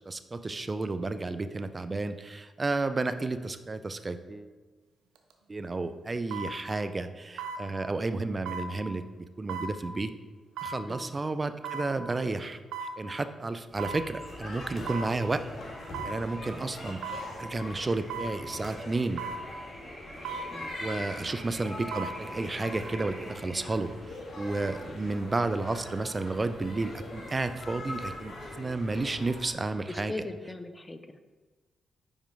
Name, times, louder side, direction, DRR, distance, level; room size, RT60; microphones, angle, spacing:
voice 1, 0.1-4.5 5.5-9.0 9.4-10.1 10.6-12.6 13.0-15.4 16.0-17.0 17.4-19.2 20.8-23.9 24.4-30.1, right 3 dB, 35° right, 11 dB, 0.4 m, -32 dB
sound 1, 5.2-5.3 6.3-6.6 7.4-7.6 8.5-8.7 9.5-9.7 10.6-10.8 11.6-11.9 12.7-13.0 13.8-14.0 14.9-15.1 15.9-16.2 17.0-17.3 18.1-18.4 19.2-19.4 20.2-20.5 21.7-22.2 22.6-22.7, right 5 dB, 85° right, 0.5 m, -36 dB
sound 2, 13.7-23.6, equal, 10° right, 1.2 m, -50 dB
sound 3, 14.2-29.5, left 1 dB, 60° left, 1.5 m, -42 dB
voice 2, 29.9-31.2, left 2 dB, 25° left, 9 dB, 0.5 m, -41 dB
5.3 x 5.0 x 3.6 m, 1.4 s
supercardioid pair, 50°, 0 cm